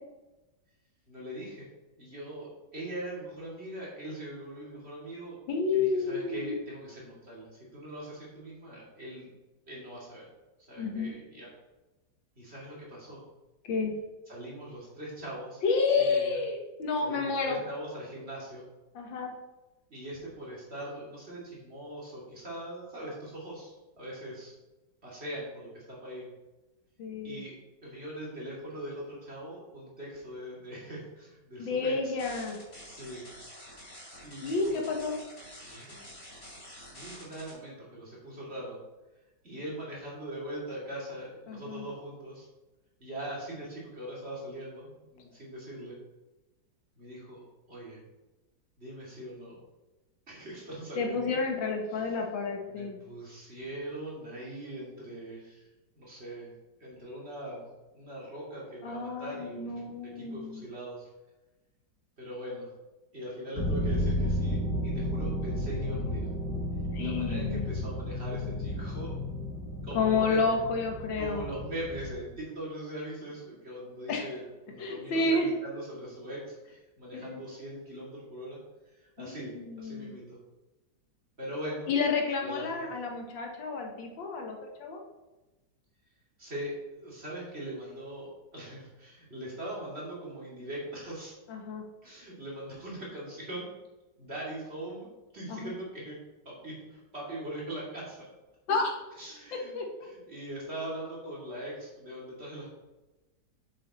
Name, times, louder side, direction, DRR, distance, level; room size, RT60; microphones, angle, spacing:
voice 1, 1.1-1.7 2.0-5.4 5.7-9.3 9.7-10.3 10.7-11.5 12.4-13.2 14.3-15.6 16.0-16.4 17.0-18.6 19.9-24.5 25.0-26.2 27.2-27.5 27.8-32.2 32.8-33.2 34.2-34.8 35.6-36.0 36.4-38.8 39.4-42.5 43.0-46.0 47.0-48.0 48.8-49.6 50.3-51.4 51.9-52.0 52.7-55.7 55.9-56.5 56.8-57.7 57.9-61.1 62.2-62.7 63.1-64.6 64.8-66.3 67.0-69.2 69.8-70.5 71.2-78.6 78.9-80.4 81.4-81.9 82.4-82.9 86.4-91.3 92.0-93.7 94.2-95.1 95.3-96.2 96.4-98.3 99.2-99.7 100.0-102.7, right 1 dB, 35° right, -5 dB, 2.8 m, -41 dB
voice 2, 5.5-6.6 10.8-11.1 13.6-13.9 15.6-17.6 19.0-19.3 27.0-27.4 31.6-32.6 34.4-35.2 41.5-41.9 51.0-53.0 58.8-60.7 66.9-67.7 69.9-71.5 74.1-74.3 74.8-75.5 77.1-77.4 79.2-80.1 81.9-85.0 91.5-91.8 95.5-95.7 98.7-98.9 99.5-99.8, left 4 dB, 90° left, 2 dB, 1.9 m, -30 dB
sound 1, 32.2-37.5, equal, 35° left, 2.9 m, -48 dB
sound 2, 63.5-72.2, left 1 dB, 60° left, 3.0 m, -32 dB
7.6 x 6.5 x 4.2 m, 1.1 s
omnidirectional pair, 2.0 m